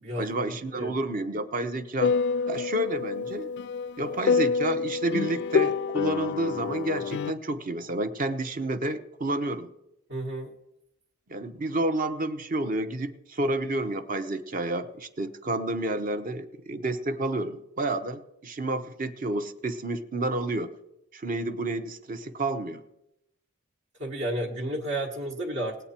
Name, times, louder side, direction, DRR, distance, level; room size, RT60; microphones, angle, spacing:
voice 1, 0.2-2.2 2.5-3.5 4.0-9.7 11.3-20.7 21.1-22.8, right 2 dB, 40° right, 10 dB, 0.8 m, -30 dB
sound 1, 2.0-7.3, left 5 dB, 55° left, 0.3 m, -27 dB
voice 2, 10.1-10.5 24.0-25.8, right 1 dB, 60° right, -1 dB, 1.5 m, -31 dB
19.0 x 8.2 x 4.3 m, 0.86 s
head